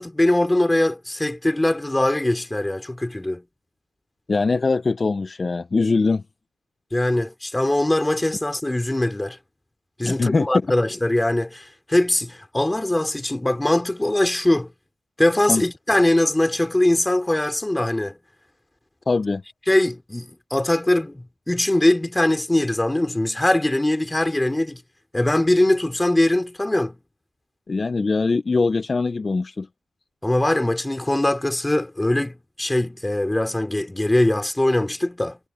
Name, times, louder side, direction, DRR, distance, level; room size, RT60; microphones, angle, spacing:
voice 1, 0.0-3.4 6.9-9.4 10.0-14.7 15.2-18.2 19.7-24.8 25.1-27.0 30.2-35.4, left 1 dB, 15° left, 4.1 m, -21 dB
voice 2, 4.3-6.2 10.0-10.5 15.5-15.6 19.1-19.4 27.7-29.7, left 3 dB, 35° left, 0.8 m, -22 dB
cardioid pair, 85°, 0 cm